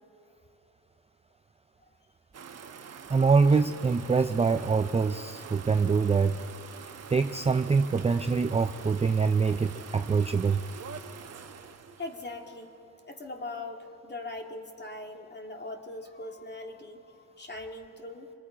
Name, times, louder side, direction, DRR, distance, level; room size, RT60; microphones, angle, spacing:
sound 1, 2.3-12.8, right 6 dB, 40° right, 1.2 m, -45 dB
voice 1, 3.1-6.4 7.1-10.6, right 5 dB, 15° right, 9 dB, 0.5 m, -24 dB
voice 2, 12.0-12.7 13.1-18.3, left 2 dB, 25° left, 3 dB, 2.5 m, -41 dB
27.5 x 21.0 x 5.0 m, 2.8 s
cardioid pair, 85°, 38 cm